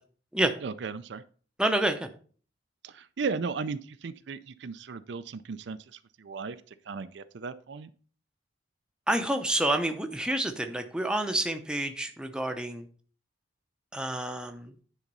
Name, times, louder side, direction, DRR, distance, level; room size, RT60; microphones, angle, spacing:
voice 1, 0.6-1.2 2.8-7.9, right 5 dB, 60° right, 12 dB, 0.4 m, -36 dB
voice 2, 1.6-2.1 9.1-12.9 13.9-14.7, right 1 dB, 5° right, 6 dB, 0.7 m, -28 dB
9.9 x 3.9 x 5.3 m, 0.42 s
head